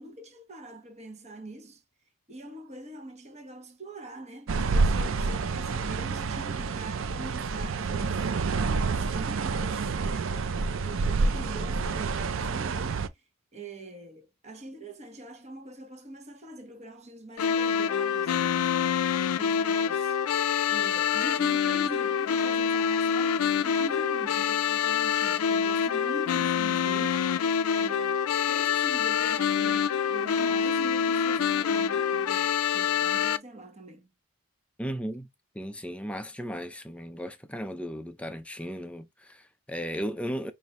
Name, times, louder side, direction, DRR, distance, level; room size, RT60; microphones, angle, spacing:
voice 1, 0.0-1.8 2.3-8.3 8.9-13.1 13.5-20.3 20.7-27.5 27.7-34.1, right 2 dB, 30° right, 1.0 m, -44 dB
sound 1, 4.5-13.1, right 4 dB, 60° right, 0.4 m, -28 dB
sound 2, 17.4-33.4, left 7 dB, 80° left, 0.4 m, -26 dB
voice 2, 34.8-35.3 35.5-40.5, equal, 5° left, 0.5 m, -36 dB
5.4 x 2.7 x 3.0 m
head